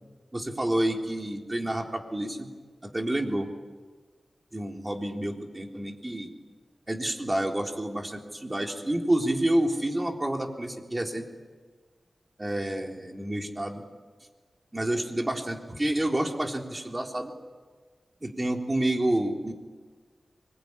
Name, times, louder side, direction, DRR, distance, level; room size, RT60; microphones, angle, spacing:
voice 1, 0.3-2.5 2.8-3.5 4.5-6.3 6.9-11.2 12.4-13.8 14.7-17.3 18.2-19.5, right 1 dB, 25° right, 2 dB, 3.8 m, -29 dB
24.0 x 22.0 x 9.9 m, 1.4 s
cardioid pair, 60°, 0 cm